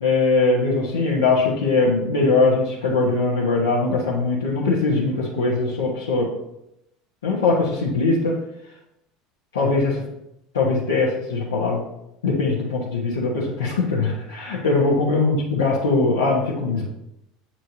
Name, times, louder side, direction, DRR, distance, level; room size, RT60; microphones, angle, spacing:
voice 1, 0.0-6.3 7.2-8.3 9.5-10.0 10.5-11.8 12.2-16.9, left 3 dB, 80° left, -5 dB, 1.1 m, -21 dB
7.9 x 4.4 x 2.8 m, 0.83 s
figure-of-eight pair, 70°, 0 cm